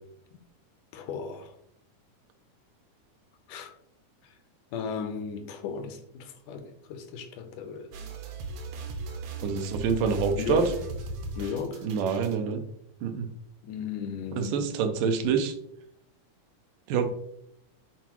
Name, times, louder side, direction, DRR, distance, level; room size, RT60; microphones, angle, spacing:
voice 1, 0.9-1.5 3.5-3.7 4.7-7.9 10.4-10.7 11.4-11.9 13.6-14.7, left 6 dB, 80° left, 2.2 m, -35 dB
sound 1, 7.9-12.4, right 2 dB, 75° right, 1.8 m, -37 dB
voice 2, 9.4-10.7 11.8-12.6 13.0-13.3 14.3-15.5 16.9-17.1, right 6 dB, 90° right, 2.4 m, -26 dB
8.1 x 4.0 x 3.0 m
omnidirectional pair, 3.7 m